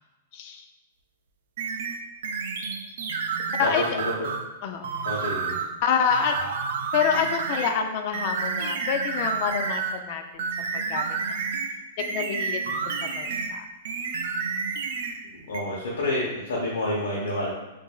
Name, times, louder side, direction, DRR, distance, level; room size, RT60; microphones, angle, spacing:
voice 1, 0.3-0.7 3.6-4.0 4.6-5.1 5.8-6.3 6.9-10.4 10.7-11.0 11.3-11.4 12.0-12.6 13.0-13.6, left 7 dB, 40° left, 5 dB, 0.3 m, -27 dB
sound 1, 1.6-4.5 4.8-5.7 6.1-7.8 8.1-10.0 10.4-13.6 13.8-15.2 15.5-15.6, right 5 dB, 65° right, 0.4 m, -30 dB
voice 2, 5.0-5.6 15.3-17.5, left 1 dB, 90° left, -5 dB, 0.8 m, -28 dB
4.7 x 2.5 x 2.3 m, 1.1 s
supercardioid pair, 165°, 0 cm